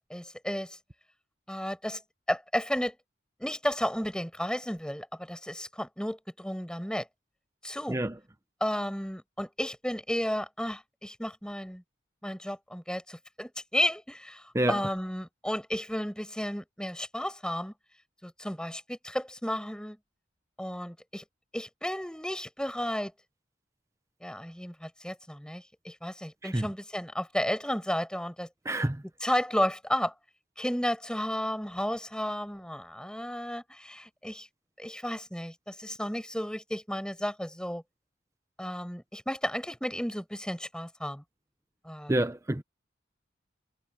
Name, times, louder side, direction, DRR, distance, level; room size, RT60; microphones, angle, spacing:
voice 1, 0.1-0.8 1.5-2.0 2.3-2.9 3.4-7.1 7.6-8.0 8.6-11.8 12.2-17.7 18.2-20.0 20.6-21.2 21.5-23.1 24.2-28.5 29.2-30.1 30.6-34.5 34.8-37.8 38.6-41.2 41.8-42.1, equal, 5° left, 6.2 m, -33 dB
voice 2, 28.7-29.0 42.1-42.6, right 1 dB, 15° right, 0.8 m, -27 dB
head